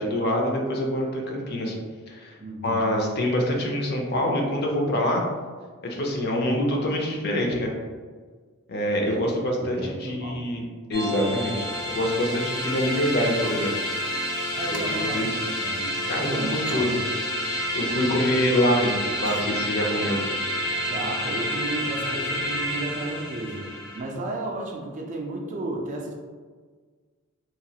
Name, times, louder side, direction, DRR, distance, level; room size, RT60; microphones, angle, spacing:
voice 1, 0.0-1.7 2.1-2.3 2.6-5.2 5.8-7.7 8.7-13.7 14.7-15.4 16.1-17.0 17.7-20.2, left 1 dB, 50° left, 0 dB, 0.5 m, -25 dB
voice 2, 2.4-2.9 9.0-9.2 9.6-10.4 14.5-15.9 16.2-17.0 20.8-26.1, right 2 dB, 35° right, 1 dB, 0.4 m, -33 dB
sound 1, 10.9-24.0, equal, 65° left, 0.9 m, -29 dB
sound 2, 14.7-14.9 15.7-15.8 16.4-16.8 18.5-19.5 21.2-21.4 21.7-22.2 23.2-24.2 24.5-24.6, right 5 dB, 90° right, 0.5 m, -44 dB
2.9 x 2.3 x 2.8 m, 1.5 s
head